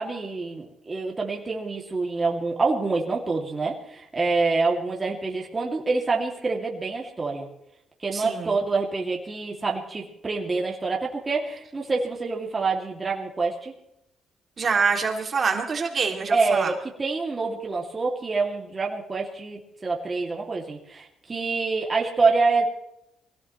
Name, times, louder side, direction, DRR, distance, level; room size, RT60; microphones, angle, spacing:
voice 1, 0.0-7.5 8.0-13.7 16.3-22.7, right 3 dB, 25° right, -1 dB, 2.5 m, -26 dB
voice 2, 8.1-8.5 14.6-16.7, right 5 dB, 45° right, 2 dB, 2.6 m, -25 dB
23.5 x 17.5 x 3.2 m, 0.79 s
cardioid pair, 90°, 0 cm